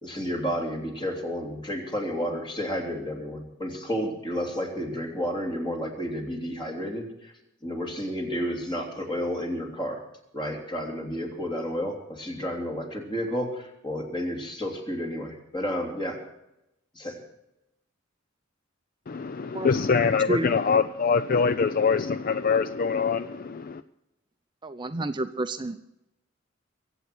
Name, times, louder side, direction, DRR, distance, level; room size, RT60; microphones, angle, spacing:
voice 1, 0.0-7.3 7.6-10.0 10.3-16.2 16.9-17.2, equal, 25° left, 2 dB, 3.2 m, -31 dB
voice 2, 19.1-23.8, left 5 dB, 45° left, 13 dB, 0.4 m, -24 dB
voice 3, 24.6-25.8, right 1 dB, 25° right, 9 dB, 0.6 m, -29 dB
23.0 x 8.2 x 6.1 m, 0.88 s
head